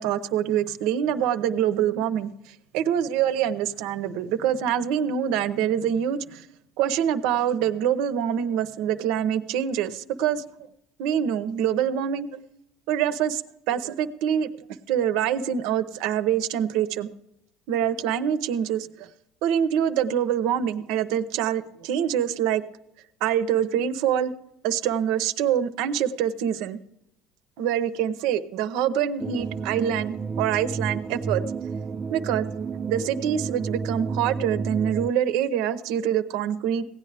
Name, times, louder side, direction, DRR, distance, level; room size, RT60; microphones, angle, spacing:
voice 1, 0.0-2.3 2.7-6.5 6.8-10.4 11.0-12.4 12.9-13.4 13.7-14.5 14.9-17.1 17.7-19.1 19.4-22.6 23.2-24.3 24.6-26.8 27.6-31.4 32.1-32.5 32.9-36.9, right 9 dB, 70° right, 11 dB, 0.7 m, -25 dB
sound 1, 29.2-35.1, right 5 dB, 25° right, 0.3 m, -31 dB
17.0 x 9.6 x 3.4 m, 0.81 s
cardioid pair, 130°, 0 cm